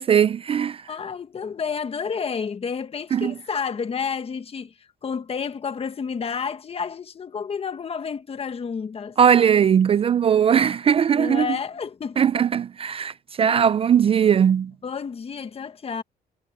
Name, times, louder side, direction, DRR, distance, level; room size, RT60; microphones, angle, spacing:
voice 1, 0.0-0.9 3.1-3.3 9.2-11.5 12.2-14.7, right 8 dB, 35° right, 0.4 m, -19 dB
voice 2, 0.9-4.7 5.0-9.2 11.1-12.3 14.8-16.0, left 6 dB, 35° left, 1.4 m, -30 dB
cardioid pair, 115°, 17 cm